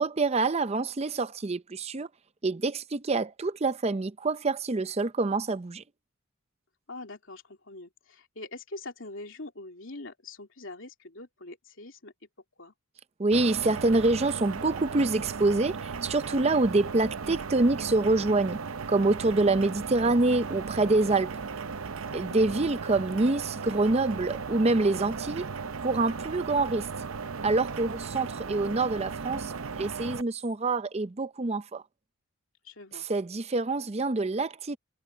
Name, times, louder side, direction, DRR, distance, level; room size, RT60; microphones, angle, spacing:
voice 1, 0.0-2.1 2.4-5.8 13.2-18.6 18.9-21.4 22.1-25.5 25.8-26.9 27.4-31.8 33.1-34.8, right 2 dB, 30° right, 0.5 m, -26 dB
voice 2, 6.9-12.1 12.6-12.7 22.0-22.6 32.6-33.1, left 2 dB, 60° left, 3.3 m, -44 dB
sound 1, 13.3-30.2, right 5 dB, 70° right, 0.7 m, -36 dB
head